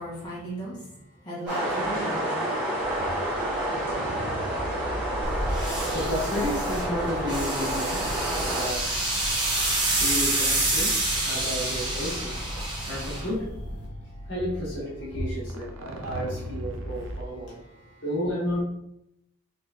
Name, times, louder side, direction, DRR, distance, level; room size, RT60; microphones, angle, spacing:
voice 1, 0.0-2.3 2.9-3.1 15.9-16.2 17.4-18.0, right 1 dB, 20° left, -9 dB, 1.4 m, -38 dB
sound 1, 1.5-8.7, right 1 dB, 5° right, 1.4 m, -29 dB
sound 2, 2.8-17.2, equal, 75° right, 0.5 m, -40 dB
voice 2, 4.9-17.6 18.0-18.6, equal, 55° left, -7 dB, 1.5 m, -33 dB
sound 3, 5.2-13.8, right 2 dB, 20° right, 1.0 m, -28 dB
4.1 x 3.4 x 2.6 m, 0.79 s
head